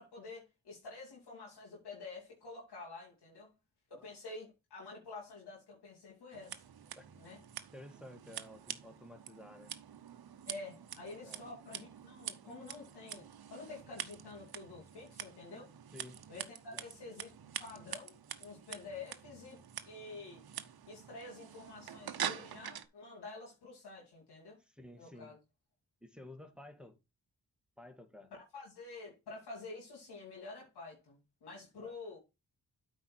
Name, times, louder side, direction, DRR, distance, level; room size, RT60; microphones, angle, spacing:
voice 1, 0.0-3.5 4.0-6.6 7.2-7.4 10.5-15.7 16.3-17.3 17.6-19.6 19.8-20.4 20.9-24.6 25.0-25.4 28.3-32.2, left 3 dB, 90° left, 2.7 m, -49 dB
Scissors, 6.3-22.9, right 9 dB, 70° right, 0.9 m, -46 dB
voice 2, 7.7-9.7 11.2-11.5 15.9-16.2 16.7-16.8 24.6-25.3 26.0-27.0 27.8-28.3 31.8-31.9, left 1 dB, ahead, 1.8 m, -53 dB
8.4 x 4.9 x 4.4 m
cardioid pair, 50°, 39 cm